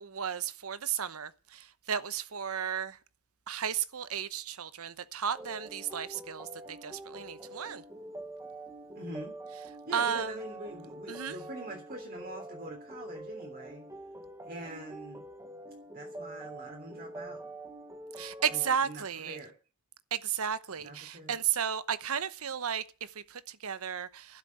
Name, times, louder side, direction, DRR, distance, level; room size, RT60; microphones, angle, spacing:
voice 1, 0.0-3.0 3.5-7.8 9.9-10.3 11.1-11.4 18.2-19.4 20.1-24.4, right 8 dB, 80° right, 0.9 m, -34 dB
sound 1, 5.4-18.8, right 1 dB, 15° right, 1.2 m, -45 dB
voice 2, 8.9-9.3 9.8-13.9 14.4-15.2 15.9-17.4 18.5-19.5 20.8-21.3, right 1 dB, 45° right, 3.3 m, -44 dB
12.0 x 7.4 x 9.4 m
head